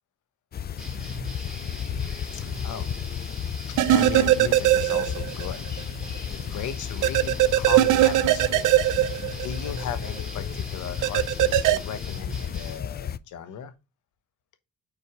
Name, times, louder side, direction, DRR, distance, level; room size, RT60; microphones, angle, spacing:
sound 1, 0.5-13.2, left 8 dB, 35° left, 0.4 m, -33 dB
sound 2, 0.8-12.8, right 1 dB, ahead, 2.7 m, -42 dB
voice 1, 2.3-2.9 3.9-5.7 6.3-8.8 9.4-13.7, left 7 dB, 80° left, 1.1 m, -36 dB
sound 3, 3.8-5.5 5.8-5.9 7.0-9.8 11.0-11.8, right 14 dB, 85° right, 0.5 m, -20 dB
5.1 x 4.5 x 4.8 m
cardioid pair, 90°, 30 cm